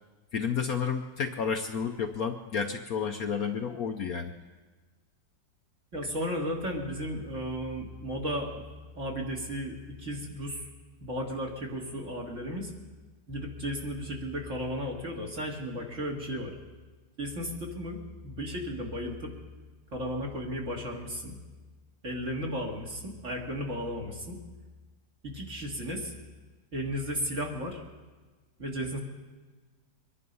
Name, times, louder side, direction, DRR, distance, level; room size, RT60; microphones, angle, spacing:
voice 1, 0.3-4.3, left 6 dB, 60° left, 5 dB, 1.1 m, -31 dB
voice 2, 5.9-8.6 8.9-10.7 11.0-12.7 13.3-16.5 17.2-19.3 19.9-21.3 22.0-24.4 25.2-26.1 26.7-27.8 28.6-29.0, equal, 40° right, -1 dB, 2.7 m, -34 dB
24.0 x 11.0 x 5.5 m, 1.3 s
omnidirectional pair, 2.0 m